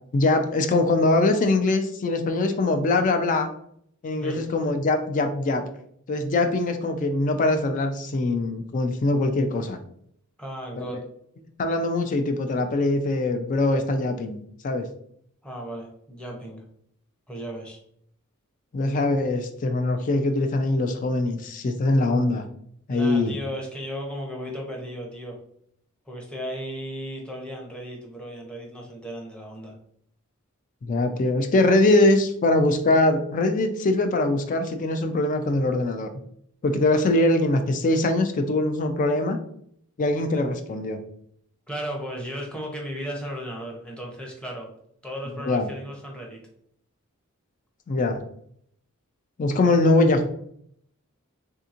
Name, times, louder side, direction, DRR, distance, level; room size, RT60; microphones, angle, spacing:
voice 1, 0.1-3.5 4.0-5.6 6.1-9.8 10.8-11.0 11.6-14.8 18.7-22.4 22.9-23.4 30.8-36.1 36.6-39.4 40.0-41.0 45.4-45.7 47.9-48.2 49.4-50.3, left 2 dB, 35° left, 7 dB, 0.3 m, -22 dB
voice 2, 10.4-11.1 15.4-16.6 17.3-17.8 22.9-25.4 26.1-29.7 41.7-44.7 45.0-46.4, equal, 5° left, -1 dB, 0.6 m, -35 dB
3.5 x 2.8 x 2.4 m, 0.68 s
head